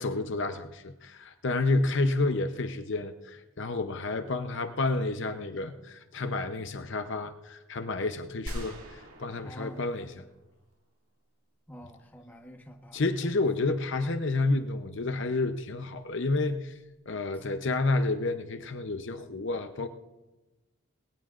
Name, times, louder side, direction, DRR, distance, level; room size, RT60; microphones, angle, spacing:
voice 1, 0.0-10.2 12.9-16.8 17.1-19.9, left 2 dB, 55° left, 8 dB, 0.8 m, -30 dB
sound 1, 8.5-10.7, right 1 dB, 75° right, 2.3 m, -42 dB
voice 2, 9.4-9.9 11.7-13.3, equal, 5° left, 3 dB, 1.1 m, -46 dB
20.5 x 18.0 x 2.5 m, 1.1 s
head